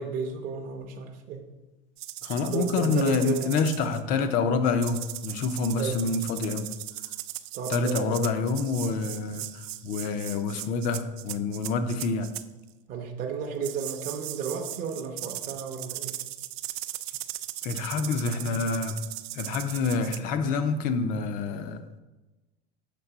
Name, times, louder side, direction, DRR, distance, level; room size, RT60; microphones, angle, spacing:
voice 1, 0.0-1.5 2.5-3.6 5.8-6.0 7.5-8.3 12.9-16.2, right 6 dB, 30° right, 2 dB, 0.6 m, -33 dB
sound 1, 2.0-4.0 4.8-12.4 13.6-20.2, right 15 dB, 85° right, 0.4 m, -38 dB
voice 2, 2.2-6.7 7.7-12.3 17.6-19.0 19.3-22.0, left 4 dB, 30° left, 9 dB, 0.4 m, -27 dB
6.7 x 3.5 x 5.8 m, 1.1 s
supercardioid pair, 165°, 30 cm